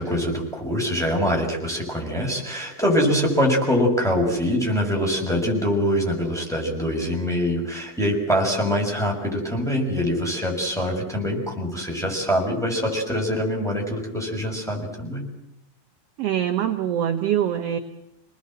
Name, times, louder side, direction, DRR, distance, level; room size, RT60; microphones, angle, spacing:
voice 1, 0.0-15.2, equal, ahead, -1 dB, 6.3 m, -24 dB
voice 2, 16.2-17.8, right 10 dB, 60° right, 6 dB, 1.8 m, -23 dB
28.5 x 20.0 x 7.7 m, 0.85 s
omnidirectional pair, 4.1 m